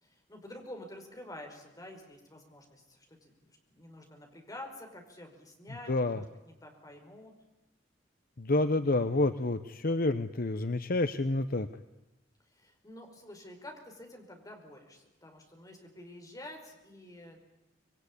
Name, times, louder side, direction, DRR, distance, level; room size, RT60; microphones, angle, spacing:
voice 1, 0.0-7.3 12.5-17.4, left 1 dB, 20° left, 3 dB, 5.0 m, -49 dB
voice 2, 5.9-6.2 8.4-11.7, left 2 dB, 50° left, 10 dB, 0.9 m, -28 dB
25.5 x 22.5 x 9.9 m, 0.93 s
head